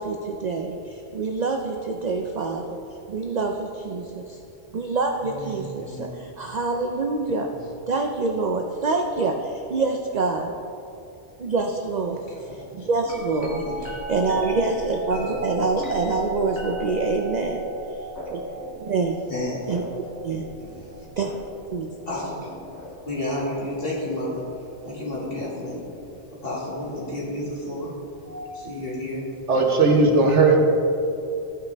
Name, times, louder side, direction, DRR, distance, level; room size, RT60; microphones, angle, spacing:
voice 1, 0.0-2.8 3.1-4.4 4.7-7.5 7.9-10.6 11.4-12.2 12.5-13.6 14.1-17.6 18.3-18.4 18.7-19.2 19.7-20.5 21.2-21.4 21.7-21.9, right 4 dB, 50° right, 3 dB, 0.5 m, -26 dB
voice 2, 5.2-6.1 7.6-7.7 12.5-12.7 13.6-13.8 15.1-15.4 15.8-15.9 19.3-19.7 20.6-20.9 22.1-22.5 23.0-24.4 24.8-25.8 26.4-27.9 28.5-29.2, left 1 dB, 50° left, -7 dB, 2.6 m, -31 dB
sound 1, 13.0-23.2 24.1-24.5 25.2-26.2 28.0-28.1, equal, 80° left, 1.7 m, -35 dB
voice 3, 28.3-28.6 29.5-30.7, right 3 dB, 80° right, 1 dB, 1.5 m, -18 dB
15.0 x 5.7 x 3.4 m, 2.7 s
omnidirectional pair, 1.2 m